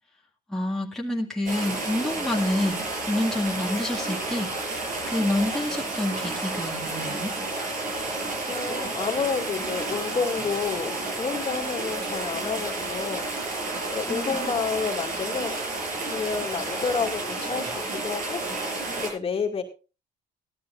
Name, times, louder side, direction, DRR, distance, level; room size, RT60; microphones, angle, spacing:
voice 1, 0.5-2.8 3.1-7.3 14.1-14.6, left 1 dB, 5° left, -2 dB, 2.2 m, -28 dB
sound 1, 1.5-19.1, right 2 dB, 50° right, 6.9 m, -31 dB
voice 2, 8.5-13.3 13.9-15.6 16.1-18.4 19.0-19.6, left 5 dB, 35° left, 2 dB, 2.4 m, -30 dB
17.0 x 13.0 x 2.5 m, 0.31 s
cardioid pair, 110°, 17 cm